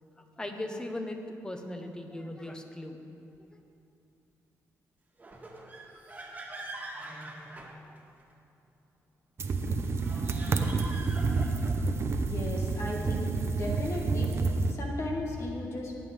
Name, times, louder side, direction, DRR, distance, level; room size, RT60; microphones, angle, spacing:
voice 1, 0.2-3.0 3.4-3.6, left 1 dB, 15° left, 4 dB, 1.2 m, -39 dB
sound 1, 5.2-8.3 9.9-11.9, right 2 dB, 25° right, 1.7 m, -44 dB
getting wood for fire, 9.4-14.7, right 4 dB, 50° right, 0.8 m, -29 dB
voice 2, 12.2-15.9, left 1 dB, 55° left, 0 dB, 1.4 m, -36 dB
18.0 x 8.4 x 3.6 m, 2.6 s
cardioid pair, 90°, 6 cm